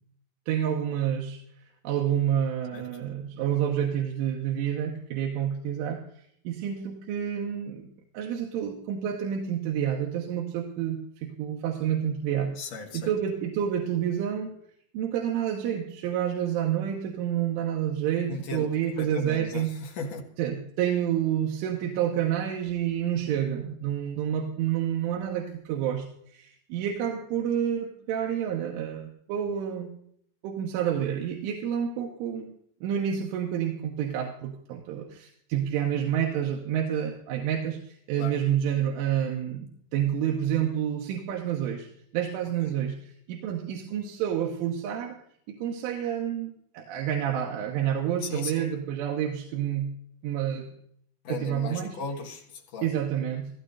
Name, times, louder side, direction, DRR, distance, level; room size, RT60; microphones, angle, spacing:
voice 1, 0.5-1.4 1.9-6.0 6.5-7.9 8.2-12.6 12.9-14.5 14.9-19.7 20.4-29.9 30.4-32.5 32.8-39.7 39.9-41.9 42.1-45.2 45.5-49.9 50.2-50.7 51.3-52.0 52.8-53.5, right 9 dB, 85° right, 1 dB, 3.7 m, -29 dB
voice 2, 2.7-3.0 12.6-13.1 18.3-18.7 19.0-20.2 38.2-38.3 42.6-42.7 48.2-48.7 51.2-52.9, left 4 dB, 70° left, 0 dB, 1.6 m, -37 dB
16.0 x 15.0 x 4.0 m, 0.65 s
omnidirectional pair, 5.6 m